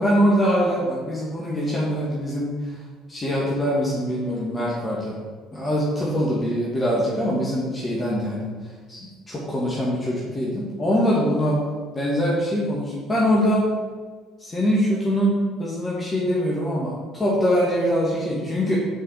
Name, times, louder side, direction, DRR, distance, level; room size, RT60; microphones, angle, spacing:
voice 1, 0.0-2.5 3.1-5.2 5.5-8.5 8.9-11.6 11.9-13.6 14.4-18.8, equal, 25° left, -6 dB, 1.9 m, -23 dB
6.7 x 5.0 x 5.1 m, 1.5 s
hypercardioid pair, 55°, 0 cm